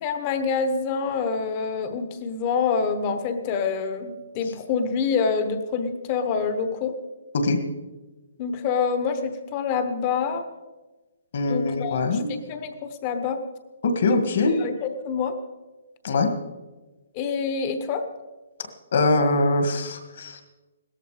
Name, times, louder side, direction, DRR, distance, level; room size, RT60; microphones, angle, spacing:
voice 1, 0.0-6.9 8.4-10.4 11.5-13.4 14.0-14.2 14.6-15.4 17.1-18.1, left 5 dB, 20° left, 9 dB, 1.0 m, -26 dB
voice 2, 11.3-12.3 13.8-14.6 16.0-16.3 18.9-20.4, left 3 dB, 45° left, 7 dB, 1.8 m, -22 dB
17.0 x 13.5 x 5.0 m, 1.2 s
hypercardioid pair, 175°, 0 cm